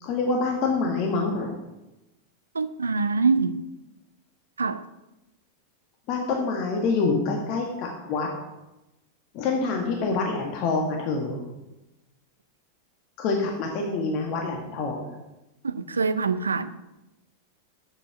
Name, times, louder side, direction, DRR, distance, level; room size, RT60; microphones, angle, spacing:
voice 1, 0.0-1.6 6.1-8.3 9.3-11.4 13.2-15.1, left 3 dB, 40° left, 1 dB, 1.5 m, -26 dB
voice 2, 2.5-3.6 4.6-4.8 15.6-16.9, right 4 dB, 75° right, 13 dB, 0.5 m, -25 dB
8.2 x 8.0 x 5.7 m, 0.97 s
figure-of-eight pair, 90°, 0 cm